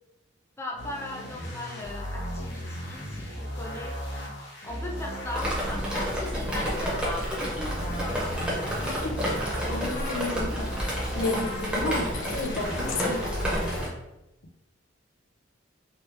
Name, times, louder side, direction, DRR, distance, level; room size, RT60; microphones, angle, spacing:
voice 1, 0.6-4.0 4.6-7.6 8.0-8.3, left 2 dB, 15° left, -1 dB, 0.4 m, -38 dB
sound 1, 0.8-7.1 7.4-13.9, equal, 60° left, 1.0 m, -36 dB
Drip, 5.4-13.9, equal, 5° right, 0.9 m, -30 dB
voice 2, 8.8-9.3 9.7-13.3 13.6-13.9, left 2 dB, 75° left, 2 dB, 0.6 m, -32 dB
3.1 x 3.0 x 3.2 m, 0.97 s
head